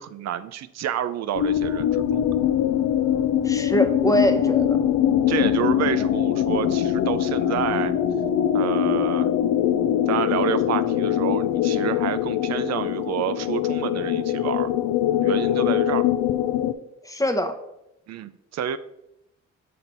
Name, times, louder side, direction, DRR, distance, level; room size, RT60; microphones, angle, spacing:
voice 1, 0.0-2.2 5.3-7.9 8.5-9.3 10.1-14.7 15.2-16.1 18.1-18.8, right 10 dB, 60° right, 12 dB, 0.4 m, -28 dB
sound 1, 1.3-16.7, left 10 dB, 85° left, 0.5 m, -22 dB
voice 2, 3.4-4.8 17.0-17.6, equal, 10° left, 6 dB, 0.8 m, -23 dB
5.9 x 4.3 x 5.3 m, 0.85 s
cardioid pair, 90°, 30 cm